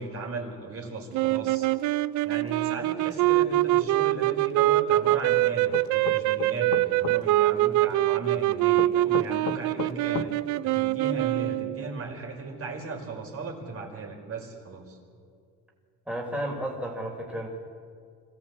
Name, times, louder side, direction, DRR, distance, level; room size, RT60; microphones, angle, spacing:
voice 1, 0.0-1.7 2.2-10.3 10.6-15.0, right 3 dB, 45° right, 1 dB, 5.2 m, -37 dB
sound 1, 1.1-11.9, right 16 dB, 60° right, 0.6 m, -24 dB
sound 2, 5.7-7.2 8.8-10.3, left 10 dB, 60° left, 1.4 m, -33 dB
voice 2, 16.1-17.5, equal, 5° right, 0 dB, 3.8 m, -32 dB
25.0 x 15.0 x 8.4 m, 2.3 s
supercardioid pair, 95°, 33 cm